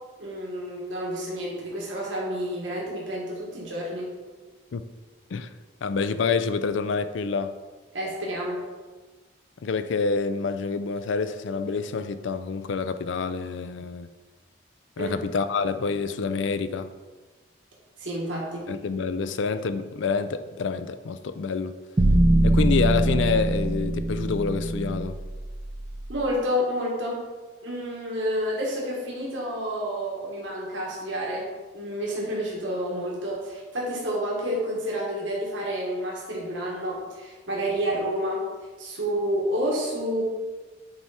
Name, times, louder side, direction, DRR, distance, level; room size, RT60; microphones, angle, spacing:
voice 1, 0.2-4.1 7.9-8.6 15.0-15.2 18.0-18.7 26.1-27.3 27.6-38.4 38.8-40.2, equal, 90° right, -4 dB, 1.8 m, -29 dB
voice 2, 5.8-7.6 9.6-14.1 15.0-16.9 18.7-21.8 22.4-25.2, left 5 dB, 85° left, 11 dB, 0.4 m, -27 dB
sound 1, 22.0-26.2, right 1 dB, 25° right, 0.4 m, -23 dB
7.8 x 4.6 x 4.2 m, 1.3 s
head